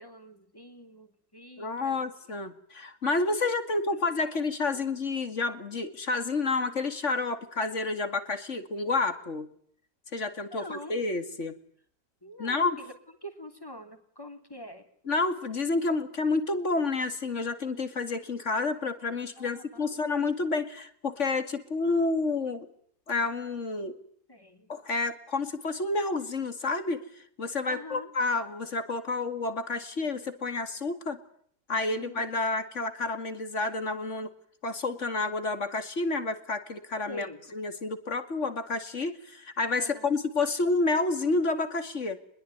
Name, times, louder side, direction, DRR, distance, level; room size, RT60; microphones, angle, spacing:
voice 1, 0.0-2.0 3.3-3.8 4.7-4.8 10.3-11.0 12.2-12.9 13.2-14.9 19.4-20.0 24.3-24.7 27.6-28.1 31.9-32.3 37.1-37.4 39.8-40.1, equal, 10° left, 5 dB, 3.6 m, -45 dB
voice 2, 1.6-9.5 10.1-11.6 12.4-12.8 15.1-22.7 23.1-24.0 24.7-31.2 31.7-34.3 34.6-37.3 37.5-42.2, left 3 dB, 40° left, 9 dB, 2.6 m, -29 dB
24.5 x 22.0 x 9.5 m, 0.63 s
omnidirectional pair, 1.9 m